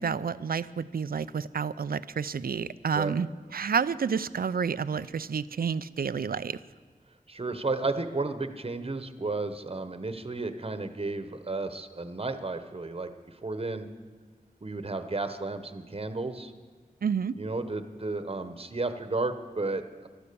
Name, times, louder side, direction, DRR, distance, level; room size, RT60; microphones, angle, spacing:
voice 1, 0.0-6.6 17.0-17.4, right 6 dB, 85° right, 15 dB, 0.5 m, -30 dB
voice 2, 7.3-13.1 13.4-13.9 14.6-16.5 17.4-20.1, right 3 dB, 40° right, 9 dB, 1.1 m, -33 dB
16.5 x 12.5 x 6.9 m, 1.4 s
wide cardioid pair, 75°, 15 cm